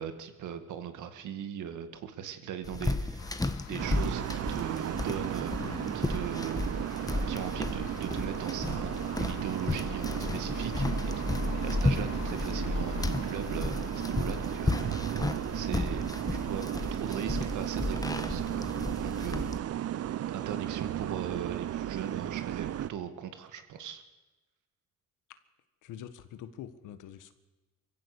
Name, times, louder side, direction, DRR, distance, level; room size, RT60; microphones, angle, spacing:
voice 1, 0.0-6.6 7.3-8.9 9.2-10.9 11.2-11.3 11.5-16.6 16.9-19.5 20.3-24.0, right 9 dB, 80° right, 9 dB, 2.1 m, -39 dB
sound 1, 2.6-19.6, left 2 dB, 10° left, 1.4 m, -33 dB
sound 2, 3.2-16.9, left 6 dB, 65° left, 2.8 m, -47 dB
sound 3, 3.8-22.9, right 11 dB, 55° right, 0.7 m, -35 dB
voice 2, 25.8-27.3, left 10 dB, 90° left, 11 dB, 1.6 m, -45 dB
23.5 x 15.5 x 8.4 m, 1.1 s
cardioid pair, 90°, 30 cm